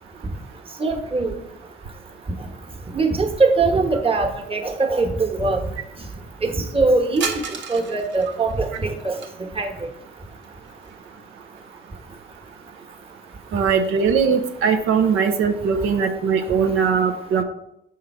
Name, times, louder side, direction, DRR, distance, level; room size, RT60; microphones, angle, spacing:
voice 1, 0.8-1.3 2.9-5.6 6.4-7.3 7.7-9.2 9.6-9.7, right 3 dB, 30° right, 3 dB, 1.2 m, -21 dB
sound 1, 7.2-9.3 10.4-11.2 11.5-11.6 12.6-12.7 13.1-14.2, right 5 dB, 70° right, 1.2 m, -34 dB
voice 2, 13.5-17.4, right 6 dB, 85° right, 5 dB, 0.7 m, -20 dB
7.1 x 3.8 x 5.5 m, 0.78 s
cardioid pair, 90°, 20 cm